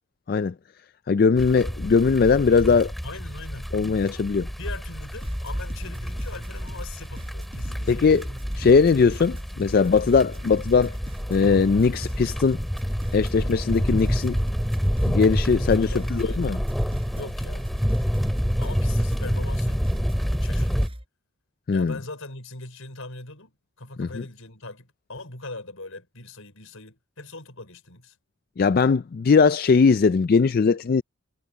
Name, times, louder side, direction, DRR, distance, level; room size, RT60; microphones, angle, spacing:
voice 1, 1.1-2.9 3.7-4.5 7.9-8.2 8.6-10.9 11.3-12.6 13.1-14.4 15.1-16.6 21.7-21.9 24.0-24.1 28.6-31.0, left 5 dB, 45° left, 0.3 m, -20 dB
sound 1, 1.4-20.9, equal, ahead, 3.5 m, -28 dB
voice 2, 3.0-3.7 4.6-8.1 15.8-16.4 17.1-17.7 18.6-19.8 20.4-20.9 21.7-28.2, left 2 dB, 70° left, 5.4 m, -40 dB
sound 2, 5.2-21.1, equal, 25° right, 5.3 m, -40 dB
head